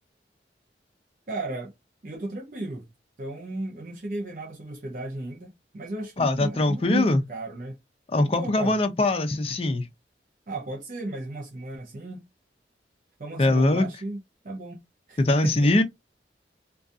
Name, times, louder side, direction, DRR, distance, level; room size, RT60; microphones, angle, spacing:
voice 1, 1.3-1.7 2.0-2.9 3.2-7.8 8.2-8.8 10.5-12.2 13.2-14.2 14.4-14.8 15.1-15.7, right 2 dB, 50° right, 0.5 m, -35 dB
voice 2, 6.2-7.2 8.1-9.9 13.4-13.9 15.2-15.8, left 2 dB, 35° left, 0.5 m, -22 dB
2.5 x 2.3 x 2.4 m
head